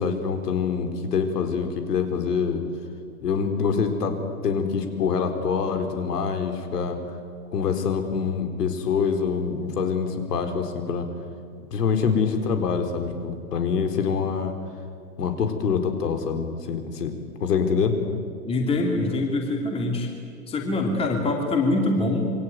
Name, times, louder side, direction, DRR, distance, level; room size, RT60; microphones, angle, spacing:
voice 1, 0.0-2.6 3.2-7.0 7.5-11.1 11.7-14.6 15.2-17.1 17.4-18.0, left 6 dB, 70° left, 6 dB, 4.5 m, -25 dB
voice 2, 18.4-20.1 20.5-22.3, left 2 dB, 10° left, 2 dB, 2.8 m, -24 dB
27.0 x 23.5 x 9.4 m, 2.3 s
hypercardioid pair, 160°, 48 cm